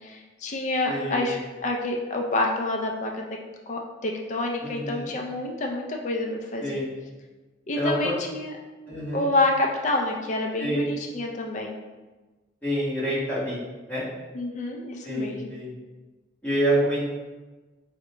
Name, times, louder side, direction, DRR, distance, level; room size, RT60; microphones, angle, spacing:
voice 1, 0.0-3.2 3.7-6.8 7.7-8.5 9.1-11.8 14.3-15.5, left 2 dB, 40° left, 1 dB, 0.3 m, -28 dB
voice 2, 0.9-1.2 4.6-5.1 6.6-6.8 7.8-8.1 8.9-9.3 10.6-10.9 12.6-13.5 13.9-14.0 15.0-15.7 16.4-17.1, right 1 dB, 10° left, -11 dB, 1.2 m, -27 dB
3.5 x 2.1 x 2.9 m, 1.2 s
head